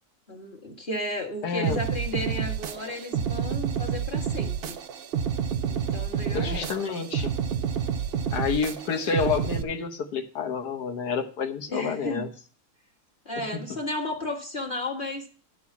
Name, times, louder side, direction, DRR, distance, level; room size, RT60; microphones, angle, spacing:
voice 1, 0.3-4.8 5.7-6.6 11.7-12.3 13.2-15.3, left 1 dB, 30° left, 0 dB, 1.7 m, -33 dB
voice 2, 1.4-1.8 6.3-7.3 8.3-12.3 13.4-13.6, left 5 dB, 75° left, 5 dB, 1.7 m, -29 dB
sound 1, 1.6-9.6, right 8 dB, 80° right, 0.5 m, -29 dB
11.5 x 4.0 x 7.1 m, 0.41 s
omnidirectional pair, 1.8 m